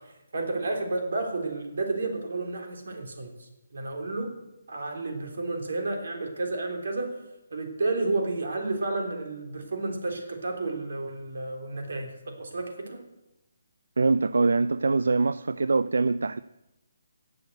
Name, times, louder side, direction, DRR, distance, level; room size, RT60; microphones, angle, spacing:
voice 1, 0.0-4.3 4.7-7.2 7.5-13.0, right 2 dB, 65° right, 3.4 m, -31 dB
voice 2, 14.0-16.4, right 3 dB, 85° right, 0.5 m, -23 dB
17.0 x 7.1 x 8.0 m
hypercardioid pair, 175°, 0 cm